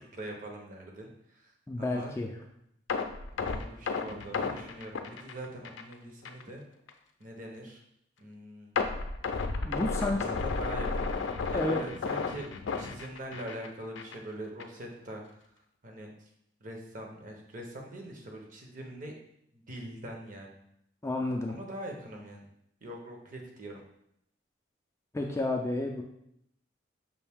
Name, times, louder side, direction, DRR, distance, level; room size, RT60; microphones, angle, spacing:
voice 1, 0.1-2.1 3.4-6.6 7.2-7.8 8.2-8.8 10.0-12.5 12.8-15.4 15.8-16.1 16.6-19.1 19.5-20.6 21.5-22.5 22.8-23.8, right 1 dB, 45° right, 1 dB, 0.8 m, -43 dB
voice 2, 1.7-2.3 9.6-10.2 11.5-11.8 21.0-21.5 25.1-26.0, left 2 dB, 15° left, 1 dB, 0.3 m, -30 dB
sound 1, 2.9-5.9 6.2-6.4 6.9-7.0 8.8-13.7 14.0-14.2 14.6-14.7, left 4 dB, 80° left, 0.4 m, -32 dB
5.5 x 2.6 x 3.5 m, 0.74 s
head